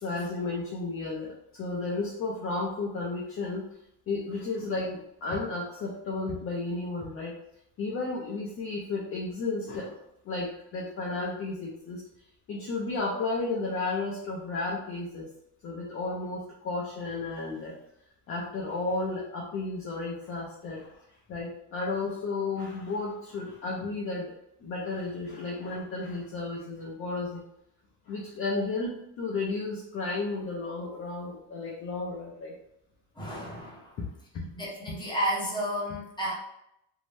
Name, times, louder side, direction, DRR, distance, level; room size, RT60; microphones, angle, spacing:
voice 1, 0.0-3.7 4.1-7.3 7.8-12.0 12.5-15.3 15.6-17.8 18.3-20.9 21.3-24.3 24.6-27.4 28.1-32.5 34.0-34.1 34.3-34.5, left 3 dB, 30° left, -3 dB, 0.4 m, -33 dB
voice 2, 33.2-34.0 34.5-36.3, equal, 10° left, -5 dB, 0.7 m, -32 dB
2.6 x 2.1 x 3.1 m, 0.78 s
cardioid pair, 140°, 49 cm